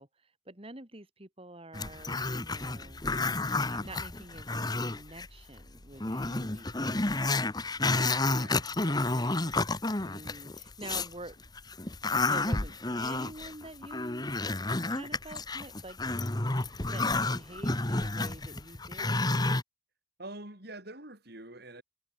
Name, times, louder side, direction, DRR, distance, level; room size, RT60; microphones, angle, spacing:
voice 1, 0.0-3.0 3.7-7.3 9.0-9.6 10.0-11.4 12.3-14.3 14.9-16.0 16.9-19.2, right 2 dB, 30° right, 2.7 m, -47 dB
Growling, 1.7-5.3 5.6-5.7 6.0-11.1 11.6-19.6, left 2 dB, 20° left, 1.2 m, -30 dB
voice 2, 8.2-9.5 20.2-21.8, right 2 dB, 55° right, 5.6 m, -46 dB
head